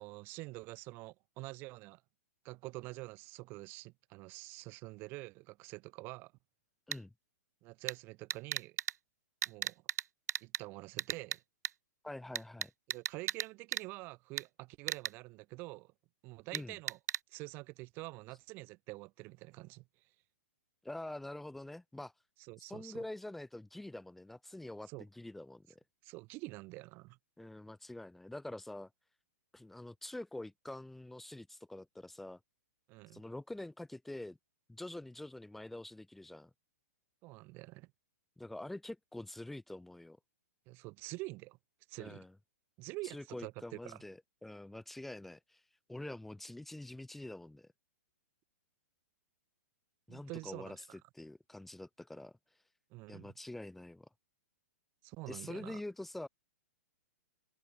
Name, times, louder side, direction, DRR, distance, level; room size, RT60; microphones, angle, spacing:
voice 1, 0.0-2.0 2.4-6.3 7.6-8.8 9.5-9.8 10.4-11.4 12.9-15.9 16.2-17.0 17.3-19.8 22.4-23.0 24.9-25.1 26.0-27.2 32.9-33.2 37.2-37.9 40.7-41.6 41.9-42.2 42.8-44.0 50.1-50.8 52.9-53.3 55.0-55.8, right 23 dB, 25° right, 3.7 m, -47 dB
sound 1, 6.9-7.0 7.9-8.0 8.3-8.9 9.4-10.0 10.3-10.6 11.0-11.4 11.6-11.7 12.3-13.4 13.7-13.8 14.4-14.5 14.9-15.1 16.5-16.6 16.9-17.2, right 9 dB, 90° right, 0.5 m, -34 dB
voice 2, 12.0-12.7 16.5-16.8 20.8-22.1 22.7-25.8 27.4-28.9 29.5-32.4 33.1-34.4 34.7-36.5 38.4-40.2 42.0-42.3 43.0-45.6 45.9-47.7 50.1-50.9 51.1-52.3 53.1-54.1 55.3-56.3, left 1 dB, ahead, 1.9 m, -46 dB
open air
hypercardioid pair, 170°, 9 cm